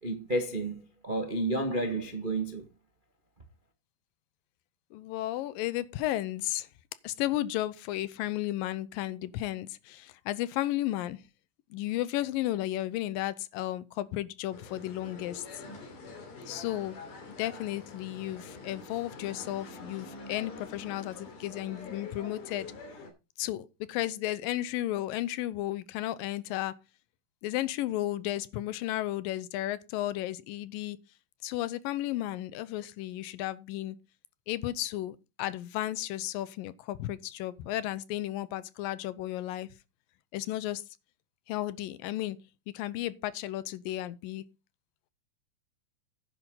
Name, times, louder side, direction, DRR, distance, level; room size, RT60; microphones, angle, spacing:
voice 1, 0.0-2.6, right 2 dB, 85° right, 0.4 m, -31 dB
voice 2, 4.9-6.7 7.0-11.2 11.7-15.6 16.5-22.7 23.4-26.8 27.4-31.0 31.4-34.0 34.5-39.7 40.3-40.8 41.5-42.4 42.7-44.4, left 14 dB, 90° left, 2.5 m, -33 dB
sound 1, 14.5-23.1, left 3 dB, 65° left, 4.4 m, -46 dB
11.0 x 10.0 x 3.8 m
omnidirectional pair, 4.0 m